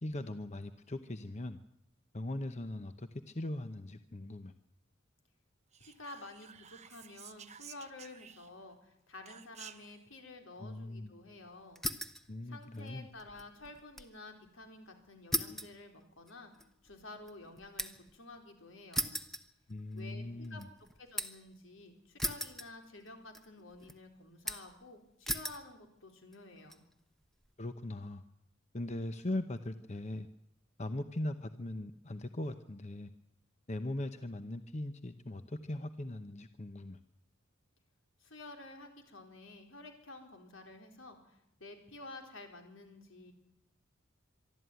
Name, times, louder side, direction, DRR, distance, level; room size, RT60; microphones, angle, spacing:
voice 1, 0.0-1.6 2.1-4.5 10.6-11.1 12.3-13.1 19.7-20.7 27.6-28.2 28.7-30.3 30.8-33.1 33.7-37.0, left 1 dB, 35° left, 9 dB, 0.9 m, -40 dB
Whispering, 5.7-8.7 9.2-10.0, right 9 dB, 35° right, 0.8 m, -53 dB
voice 2, 5.8-11.8 12.4-16.5 16.8-19.2 19.9-20.6 21.0-26.8 38.2-43.3, left 2 dB, 80° left, 4 dB, 4.3 m, -51 dB
sound 1, 11.8-12.3 12.6-14.2 14.5-14.6 15.3-18.2 18.9-20.1 20.4-21.5 22.2-23.1 23.3-23.9 24.5-24.8 25.3-25.7 26.3-26.8, equal, ahead, 1.0 m, -38 dB
24.0 x 13.0 x 9.3 m, 0.79 s
head